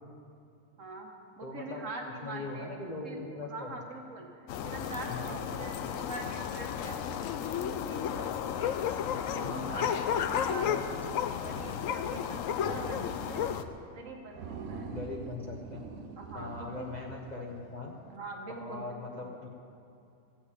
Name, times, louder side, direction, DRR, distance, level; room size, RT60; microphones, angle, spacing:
voice 1, 0.8-1.1 1.4-2.8 3.0-8.7 9.3-9.9 10.3-10.8 11.3-13.5 13.9-14.9 16.2-16.9 17.2-17.4 18.1-19.0, right 2 dB, 60° right, 1 dB, 1.7 m, -43 dB
voice 2, 1.4-1.9 2.2-3.7 5.0-5.5 9.4-9.9 10.6-10.9 14.9-15.9 16.3-18.0 18.6-19.5, left 3 dB, 35° left, -2 dB, 0.9 m, -40 dB
sound 1, 4.5-13.6, left 8 dB, 75° left, 1.0 m, -33 dB
sound 2, 12.6-13.6 13.9-14.0 14.3-17.7, right 5 dB, 85° right, 1.3 m, -44 dB
15.0 x 5.9 x 8.3 m, 2.6 s
omnidirectional pair, 1.5 m